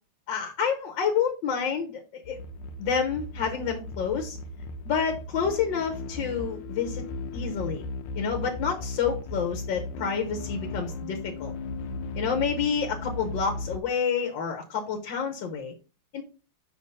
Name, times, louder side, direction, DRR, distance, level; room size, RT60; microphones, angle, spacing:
voice 1, 0.3-2.4 2.8-4.4 4.8-7.0 7.3-7.8 8.2-11.5 12.2-15.7 16.1-16.2, left 6 dB, 65° left, 3 dB, 1.5 m, -28 dB
sound 1, 2.2-13.8, left 3 dB, 80° left, 1.5 m, -36 dB
5.6 x 3.5 x 5.3 m, 0.34 s
omnidirectional pair, 2.3 m